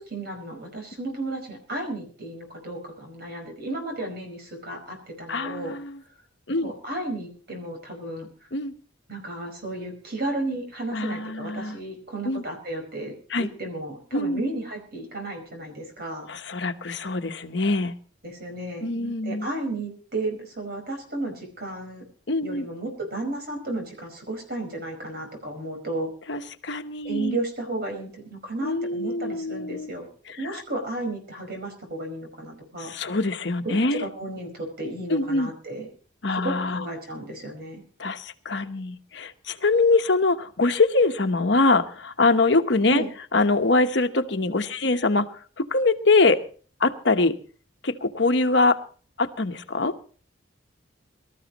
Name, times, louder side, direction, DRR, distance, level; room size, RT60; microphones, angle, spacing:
voice 1, 0.0-5.8 6.6-8.5 9.1-16.3 18.2-22.0 22.4-26.1 27.0-30.1 30.4-32.9 33.6-35.9 36.3-37.8 42.9-43.1, right 2 dB, 50° right, 4 dB, 4.9 m, -33 dB
voice 2, 5.3-6.0 6.5-6.7 8.5-8.8 10.9-11.8 12.2-12.4 13.3-13.5 14.1-14.4 16.3-18.0 18.8-19.5 22.3-22.7 26.3-27.4 28.6-29.9 30.3-30.6 32.9-34.1 35.1-35.5 36.2-36.8 38.0-43.0 43.3-45.3 45.6-46.4 46.8-47.4 47.8-48.8 49.2-49.9, left 3 dB, 60° left, 8 dB, 1.1 m, -23 dB
24.5 x 13.5 x 3.0 m, 0.41 s
head